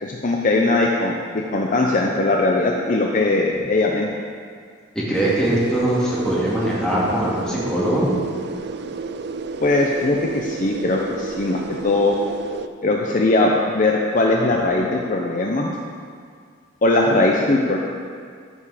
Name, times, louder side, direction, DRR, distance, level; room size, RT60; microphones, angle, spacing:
voice 1, 0.0-4.1 9.6-12.2 12.8-15.7 16.8-17.8, left 2 dB, 40° left, 0 dB, 0.6 m, -20 dB
voice 2, 5.1-8.1, right 1 dB, 5° left, -8 dB, 2.3 m, -21 dB
sound 1, 5.1-12.7, right 4 dB, 55° right, 0.4 m, -32 dB
13.5 x 5.4 x 5.0 m, 2.1 s
head